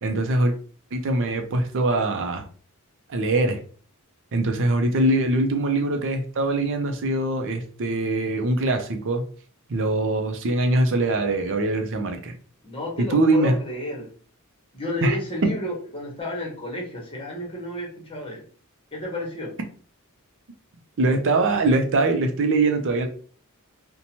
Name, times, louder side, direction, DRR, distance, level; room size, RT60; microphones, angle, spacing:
voice 1, 0.0-0.5 0.9-2.4 3.1-3.6 4.3-9.2 9.7-12.3 13.1-13.5 15.0-15.1 21.0-23.1, right 2 dB, 60° right, 5 dB, 0.5 m, -22 dB
voice 2, 12.6-14.1 14.7-18.4 18.9-19.5, left 1 dB, 25° left, -2 dB, 1.0 m, -31 dB
2.7 x 2.2 x 2.9 m, 0.43 s
head